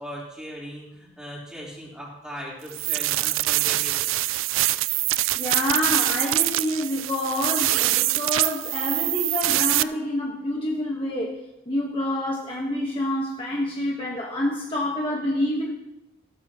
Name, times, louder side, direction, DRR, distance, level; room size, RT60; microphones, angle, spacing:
voice 1, 0.0-4.2, equal, 5° right, -6 dB, 3.9 m, -39 dB
sound 1, 2.7-9.8, right 17 dB, 80° right, 0.4 m, -24 dB
voice 2, 5.4-11.4 11.7-15.7, left 1 dB, 25° left, -2 dB, 1.4 m, -27 dB
16.5 x 13.0 x 3.1 m, 0.93 s
head